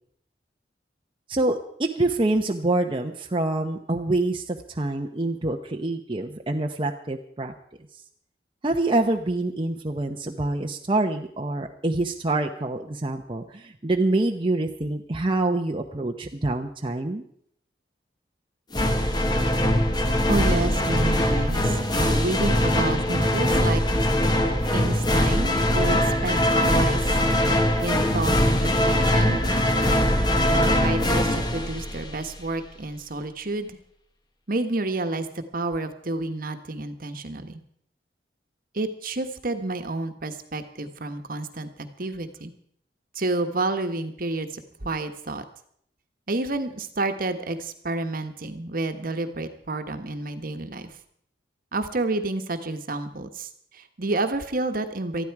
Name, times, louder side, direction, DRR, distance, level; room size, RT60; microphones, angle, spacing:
voice 1, 1.3-7.5 8.6-17.2, right 2 dB, 30° right, 3 dB, 0.9 m, -26 dB
sound 1, 18.7-32.4, left 1 dB, 25° left, 1.7 m, -22 dB
voice 2, 20.3-23.8 24.7-27.1 27.8-29.4 30.5-33.8 34.5-37.6 38.7-42.5 43.1-45.4 46.3-50.9 51.7-55.2, right 2 dB, 55° right, 7 dB, 1.4 m, -30 dB
19.5 x 13.5 x 4.8 m, 0.67 s
head